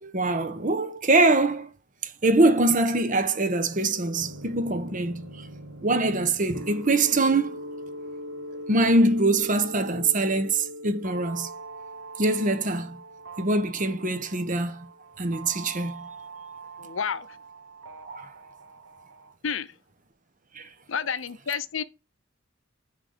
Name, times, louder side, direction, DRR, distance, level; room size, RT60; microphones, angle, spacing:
voice 1, 0.0-1.7 2.2-5.3 5.8-7.6 8.7-11.5 12.2-13.0 13.4-14.9 15.2-16.1 18.0-18.3 20.5-20.7, right 2 dB, 40° right, 1.0 m, -23 dB
sound 1, 3.8-19.3, right 1 dB, 80° right, 1.1 m, -41 dB
voice 2, 16.8-17.3 19.4-19.7 20.9-21.8, left 6 dB, 75° left, 0.7 m, -30 dB
9.7 x 4.0 x 5.0 m
head